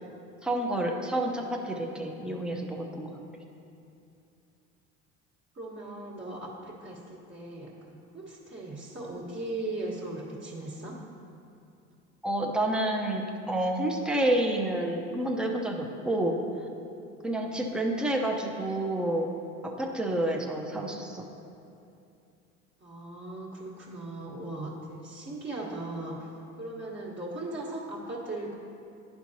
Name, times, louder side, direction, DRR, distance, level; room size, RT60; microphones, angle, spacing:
voice 1, 0.4-3.1 12.2-16.4 17.2-19.3 19.6-21.3, right 1 dB, ahead, 1 dB, 0.8 m, -29 dB
voice 2, 5.5-11.0 22.8-26.3 26.6-28.5, right 2 dB, 35° right, -6 dB, 1.4 m, -38 dB
11.0 x 4.6 x 2.8 m, 2.6 s
hypercardioid pair, 70°, 34 cm